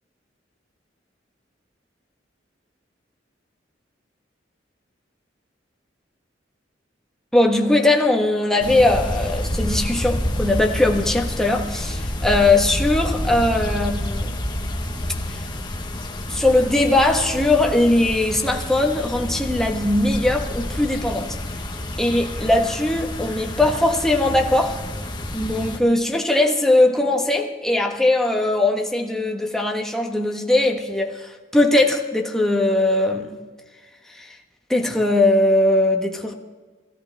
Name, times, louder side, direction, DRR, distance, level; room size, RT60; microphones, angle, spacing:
voice 1, 7.3-14.3 15.3-15.4 16.3-21.4 22.0-24.8 25.3-33.4 34.1-34.4 34.7-36.3, left 2 dB, 5° left, 1 dB, 1.3 m, -20 dB
sound 1, 8.6-25.8, left 1 dB, 25° left, 1.3 m, -28 dB
21.0 x 16.5 x 3.5 m, 1.4 s
head